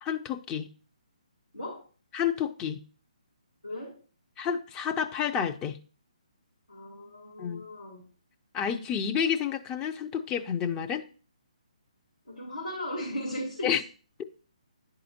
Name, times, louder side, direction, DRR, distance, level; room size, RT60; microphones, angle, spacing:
voice 1, 0.0-0.7 2.1-2.8 4.4-5.8 7.4-7.6 8.5-11.0 13.6-13.8, left 8 dB, 15° left, 0.4 m, -29 dB
voice 2, 3.6-4.0 6.7-8.0 12.3-13.8, left 1 dB, 85° left, 2.8 m, -37 dB
10.5 x 3.8 x 2.8 m
figure-of-eight pair, 140°, 4 cm